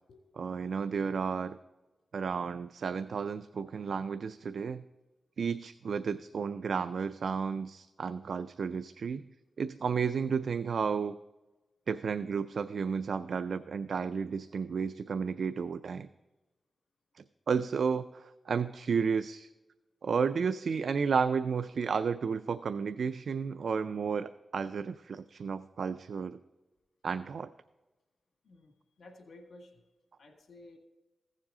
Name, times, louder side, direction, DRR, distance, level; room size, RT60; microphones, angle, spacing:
voice 1, 0.4-1.6 2.1-4.8 5.4-9.2 9.6-11.2 11.9-16.1 17.2-19.5 20.0-26.4 27.0-27.5, right 6 dB, 80° right, 12 dB, 0.3 m, -32 dB
voice 2, 29.0-29.8 30.2-30.8, left 2 dB, 85° left, 3 dB, 1.7 m, -53 dB
15.5 x 7.4 x 3.7 m, 1.1 s
wide cardioid pair, 80°, 0 cm